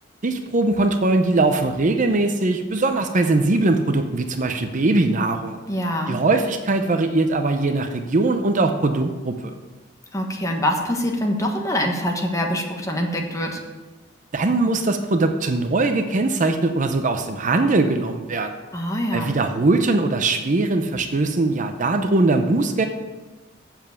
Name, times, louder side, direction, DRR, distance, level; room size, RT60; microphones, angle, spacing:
voice 1, 0.2-5.6 6.1-9.5 14.3-18.6 19.1-22.9, right 2 dB, 40° right, 6 dB, 0.6 m, -21 dB
voice 2, 5.7-6.2 10.1-13.6 18.7-19.3, equal, 15° left, 2 dB, 1.3 m, -24 dB
7.6 x 7.2 x 6.8 m, 1.2 s
head